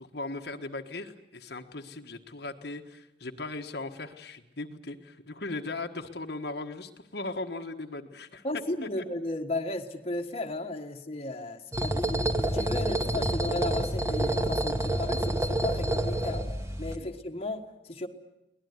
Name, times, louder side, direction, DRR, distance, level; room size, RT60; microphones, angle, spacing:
voice 1, 0.0-8.4 17.0-17.1, left 2 dB, 65° left, 4 dB, 1.5 m, -38 dB
voice 2, 8.4-16.5 16.8-18.1, left 2 dB, 35° left, 3 dB, 1.6 m, -35 dB
sound 1, 11.7-16.9, right 1 dB, 15° right, 2.0 m, -28 dB
23.5 x 19.0 x 9.6 m, 0.90 s
head